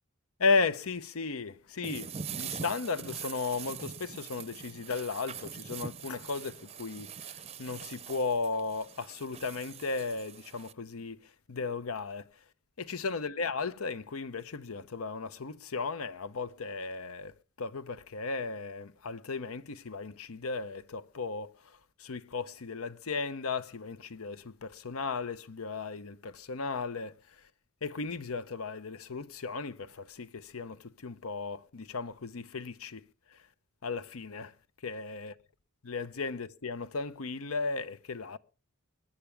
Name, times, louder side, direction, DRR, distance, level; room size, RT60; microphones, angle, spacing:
voice 1, 0.4-11.2 11.5-12.3 12.8-27.2 27.8-33.0 33.3-33.4 33.8-34.5 34.8-35.3 35.8-38.4, left 4 dB, 90° left, 0.8 m, -35 dB
sound 1, 1.8-10.7, right 7 dB, 30° right, 0.5 m, -43 dB
22.0 x 10.0 x 3.4 m
head